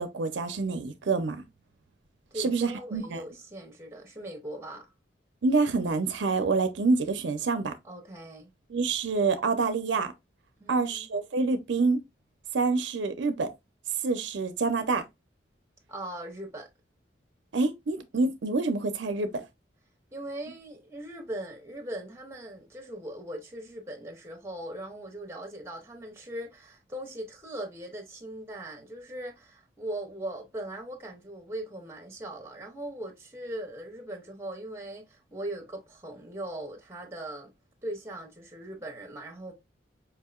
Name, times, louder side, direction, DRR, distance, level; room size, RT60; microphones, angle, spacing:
voice 1, 0.0-1.4 2.4-3.2 5.4-7.7 8.7-10.1 10.7-12.0 12.5-13.5 14.0-15.0 17.5-19.4, right 4 dB, 75° right, 0.5 m, -27 dB
voice 2, 2.3-4.9 7.8-8.5 10.6-11.1 15.9-16.7 20.1-37.5 37.8-39.5, right 1 dB, 15° right, 0.8 m, -40 dB
4.7 x 2.8 x 2.3 m
head